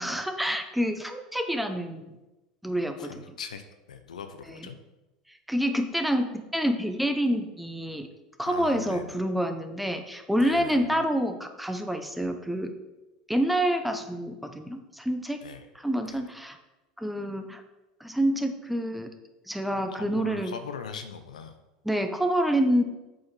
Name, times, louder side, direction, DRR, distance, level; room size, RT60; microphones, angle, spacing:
voice 1, 0.0-2.1 2.6-3.1 5.5-8.1 8.4-12.7 13.3-15.4 15.8-16.6 17.0-17.6 18.0-19.1 19.5-20.5 21.8-22.8, equal, ahead, 7 dB, 0.8 m, -27 dB
voice 2, 3.0-3.6 3.9-4.8 8.5-9.2 10.4-11.0 15.4-15.7 16.0-16.3 19.7-21.6, left 6 dB, 80° left, 8 dB, 0.7 m, -41 dB
8.2 x 5.1 x 4.1 m, 1.0 s
hypercardioid pair, 85°, 4 cm